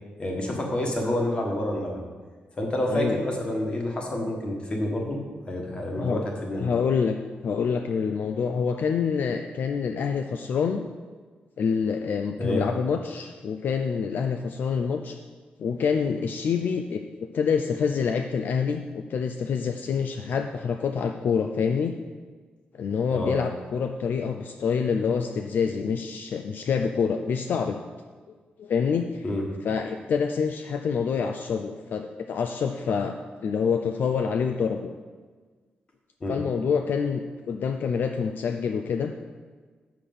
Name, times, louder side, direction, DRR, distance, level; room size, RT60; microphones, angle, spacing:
voice 1, 0.2-2.0 2.6-5.2 5.5-6.7 12.4-12.6 23.1-23.3 29.2-29.4 36.2-36.4, left 1 dB, 30° left, 0 dB, 1.5 m, -28 dB
voice 2, 6.6-7.1 7.4-10.8 11.6-15.2 15.6-17.0 17.3-21.9 22.7-27.8 28.6-29.2 29.6-33.1 33.4-34.9 36.3-39.1, left 6 dB, 65° left, 5 dB, 0.4 m, -26 dB
6.5 x 5.8 x 7.0 m, 1.4 s
wide cardioid pair, 165°, 4 cm